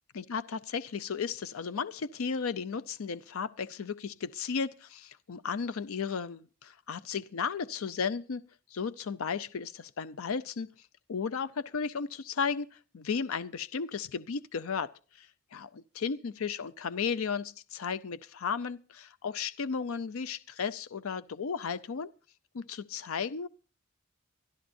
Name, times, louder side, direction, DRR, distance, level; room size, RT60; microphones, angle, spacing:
voice 1, 0.1-8.4 8.7-10.7 11.1-22.1 22.5-23.5, left 6 dB, 80° left, 0.5 m, -34 dB
24.5 x 12.5 x 2.6 m
head